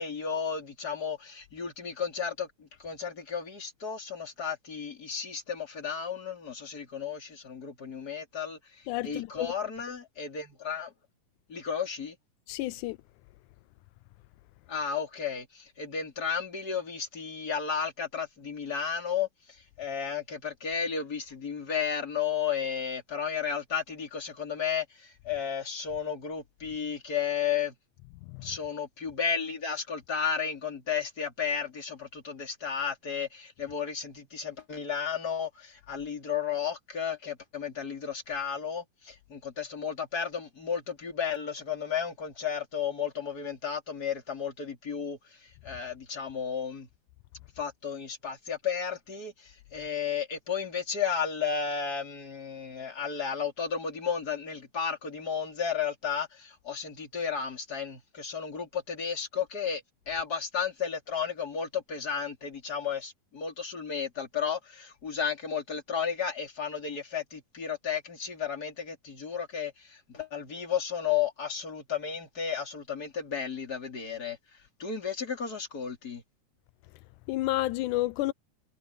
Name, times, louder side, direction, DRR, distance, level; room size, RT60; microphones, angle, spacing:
voice 1, 0.0-10.9 11.5-12.2 14.7-27.7 28.4-46.9 47.6-74.4 74.8-76.2, left 7 dB, 30° left, 3.8 m, -33 dB
voice 2, 8.9-9.5 12.5-13.0 28.3-28.5 77.3-78.3, left 16 dB, 85° left, 2.0 m, -30 dB
omnidirectional pair, 3.5 m